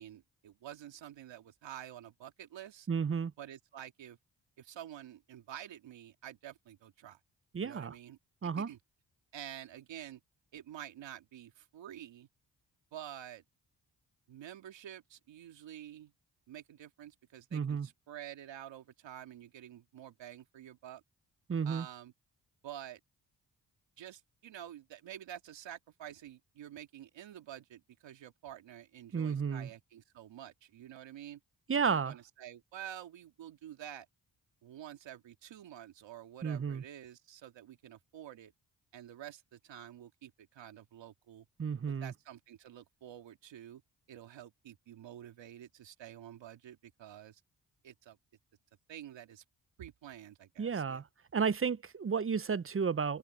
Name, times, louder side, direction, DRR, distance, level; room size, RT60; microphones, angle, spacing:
voice 1, 0.0-2.9 3.4-4.2 4.6-7.2 7.6-8.2 8.6-8.8 9.3-10.2 10.5-12.3 12.9-13.4 14.3-16.1 16.5-21.0 21.6-22.1 22.6-23.0 24.0-31.4 31.7-34.1 34.6-38.5 38.9-41.5 41.9-43.8 44.1-47.4 47.8-48.2 48.9-49.4 49.8-51.0, right 11 dB, 85° right, 2.2 m, -49 dB
voice 2, 2.9-3.3 7.5-7.9 8.4-8.7 17.5-17.9 21.5-21.9 29.1-29.7 31.7-32.1 36.4-36.8 41.6-42.1 50.6-51.0 51.3-53.2, right 6 dB, 30° right, 0.7 m, -32 dB
supercardioid pair, 50°, 43 cm